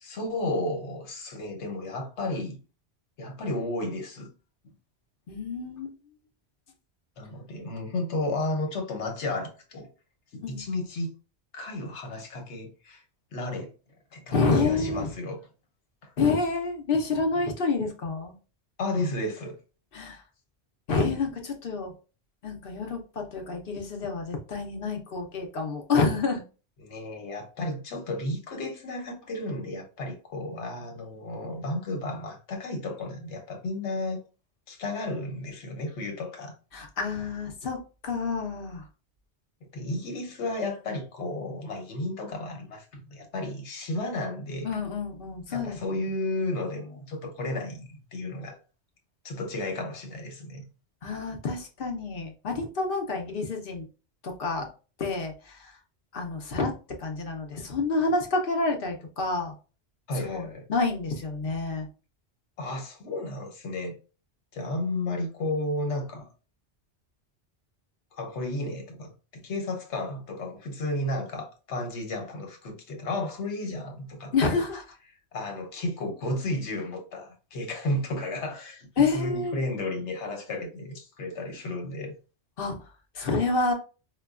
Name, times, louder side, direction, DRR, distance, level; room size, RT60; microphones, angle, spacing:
voice 1, 0.0-2.6 3.2-4.3 7.2-9.9 10.3-11.1 11.5-13.0 13.3-13.7 14.1-15.5 16.0-16.1 18.8-19.6 26.8-34.2 34.7-36.5 39.7-44.7 45.5-48.6 49.2-50.6 60.1-60.6 62.6-64.0 64.5-66.3 68.1-74.6 75.3-82.2, left 2 dB, 85° left, 1.2 m, -33 dB
voice 2, 5.3-5.9 10.4-10.8 14.3-15.1 16.2-18.3 19.9-20.2 20.9-21.9 22.4-26.4 36.7-37.8 38.0-38.8 44.6-45.8 51.0-53.9 54.4-54.7 55.0-55.7 56.1-56.7 57.0-59.5 60.2-61.9 74.3-74.8 79.0-79.6 82.6-82.8 83.1-83.7, left 4 dB, 60° left, 0.9 m, -28 dB
4.8 x 2.2 x 2.3 m
omnidirectional pair, 1.1 m